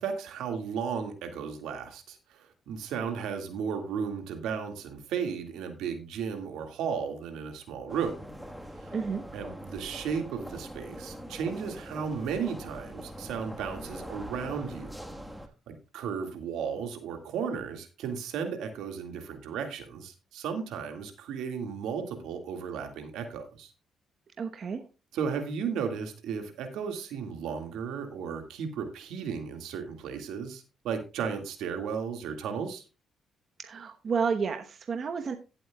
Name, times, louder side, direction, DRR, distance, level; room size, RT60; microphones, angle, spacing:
voice 1, 0.0-8.3 8.8-8.9 9.3-14.9 15.7-23.7 25.1-32.8, right 6 dB, 85° right, 6 dB, 2.0 m, -34 dB
sound 1, 7.9-15.5, equal, 5° right, 1.4 m, -43 dB
voice 2, 8.9-9.2 24.4-24.8 33.6-35.3, right 5 dB, 50° right, 6 dB, 1.0 m, -31 dB
16.0 x 7.9 x 2.3 m, 0.31 s
cardioid pair, 90°, 0 cm